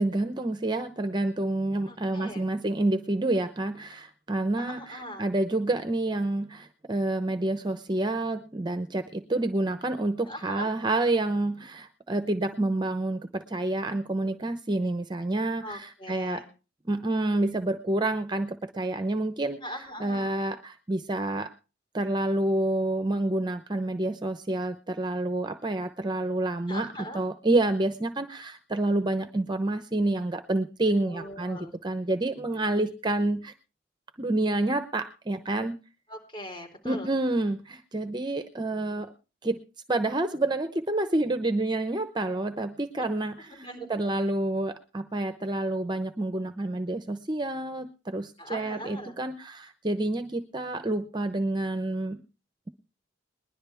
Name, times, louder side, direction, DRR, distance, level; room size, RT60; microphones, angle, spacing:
voice 1, 0.0-16.4 16.8-19.6 20.0-21.5 21.9-26.9 27.1-33.5 34.2-35.8 36.8-39.1 39.4-39.6 39.9-52.2, right 2 dB, 25° right, 10 dB, 0.7 m, -28 dB
voice 2, 1.9-2.5 4.6-5.2 10.3-10.7 15.6-16.5 19.6-20.3 26.7-27.2 31.1-31.7 36.1-37.1 42.9-43.0 43.5-44.0 48.4-49.1, equal, 25° left, 0 dB, 3.9 m, -40 dB
20.5 x 11.5 x 3.4 m, 0.32 s
head